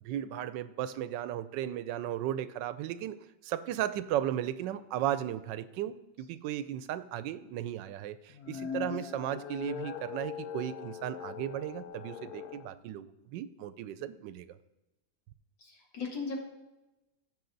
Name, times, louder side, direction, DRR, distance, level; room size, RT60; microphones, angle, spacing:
voice 1, 0.0-3.2 3.4-14.5, right 11 dB, 85° right, 14 dB, 1.2 m, -35 dB
sound 1, 8.3-12.7, left 8 dB, 65° left, 1.0 m, -41 dB
voice 2, 15.6-16.4, left 4 dB, 90° left, 0 dB, 2.6 m, -37 dB
15.0 x 5.5 x 3.9 m, 1.0 s
omnidirectional pair, 1.9 m